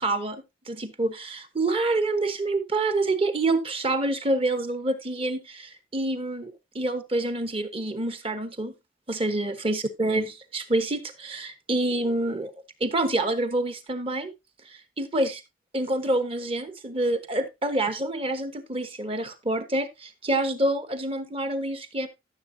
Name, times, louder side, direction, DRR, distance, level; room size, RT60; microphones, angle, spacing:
voice 1, 0.0-8.7 9.1-12.5 12.8-14.3 14.7-15.4 15.7-22.1, right 2 dB, 25° right, 10 dB, 1.1 m, -27 dB
13.5 x 7.2 x 2.7 m, 0.23 s
head